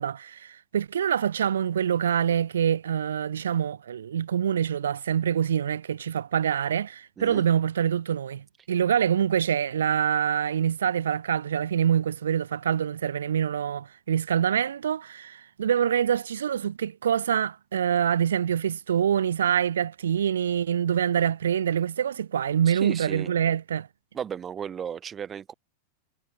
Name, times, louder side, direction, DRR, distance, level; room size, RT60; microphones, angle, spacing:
voice 1, 0.0-23.9, right 9 dB, 65° right, 0.4 m, -25 dB
voice 2, 22.7-23.3 24.1-25.5, right 8 dB, 25° right, 1.1 m, -35 dB
figure-of-eight pair, 90°, 0 cm